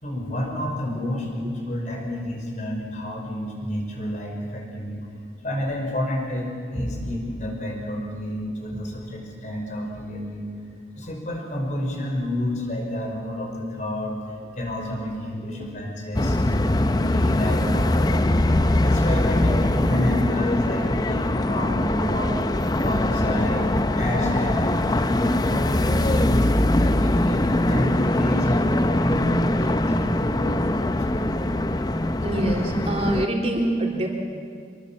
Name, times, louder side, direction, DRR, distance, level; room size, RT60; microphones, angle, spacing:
voice 1, 0.0-5.1 5.4-10.5 11.0-16.4 16.7-18.4 18.8-22.5 22.8-23.7 24.0-26.5 26.8-31.3, left 1 dB, 45° left, 1 dB, 5.5 m, -29 dB
sound 1, 16.1-33.3, left 1 dB, 25° left, 0.7 m, -22 dB
voice 2, 32.2-34.1, right 1 dB, 35° right, 0 dB, 3.6 m, -25 dB
25.5 x 22.0 x 7.5 m, 2.2 s
head